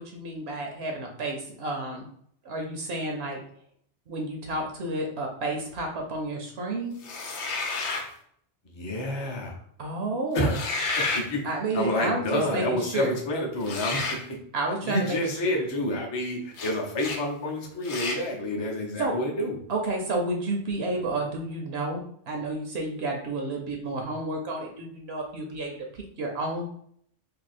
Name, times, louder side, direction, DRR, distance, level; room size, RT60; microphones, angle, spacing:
voice 1, 0.0-2.1 2.4-3.4 4.1-6.9 9.8-10.5 11.4-13.1 14.5-15.2 19.0-19.2 19.7-25.7 26.2-26.7, right 2 dB, 70° right, 1 dB, 0.9 m, -30 dB
sound 1, 7.0-8.1 10.4-11.3 13.6-14.2 16.5-16.7 17.0-17.2 17.8-18.2, left 3 dB, 85° left, 0.9 m, -30 dB
voice 2, 8.6-9.6 10.3-11.4 11.7-14.2 14.8-19.6, left 1 dB, 30° left, 0 dB, 0.6 m, -29 dB
2.7 x 2.7 x 4.1 m, 0.66 s
omnidirectional pair, 1.1 m